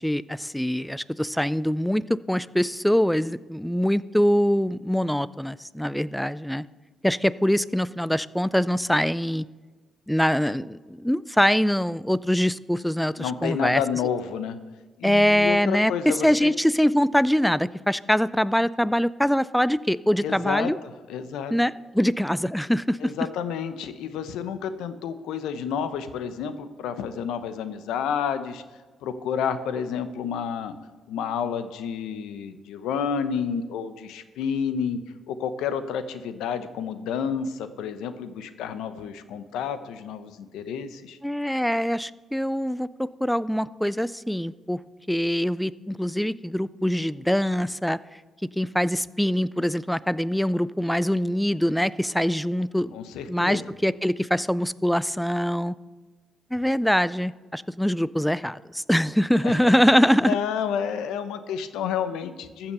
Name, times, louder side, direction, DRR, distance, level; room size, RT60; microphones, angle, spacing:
voice 1, 0.0-6.6 7.0-9.5 10.1-13.8 15.0-20.8 21.5-23.1 41.2-44.8 45.1-48.0 48.6-53.0 53.3-55.7 56.5-60.4, equal, 5° left, 18 dB, 0.3 m, -23 dB
voice 2, 13.2-14.6 15.0-16.5 20.2-20.7 21.1-21.5 23.0-28.6 29.0-30.7 31.1-35.0 35.3-41.2 52.9-53.6 59.4-59.7 60.2-62.7, left 7 dB, 90° left, 11 dB, 0.8 m, -30 dB
14.0 x 5.9 x 6.8 m, 1.3 s
cardioid pair, 90°, 0 cm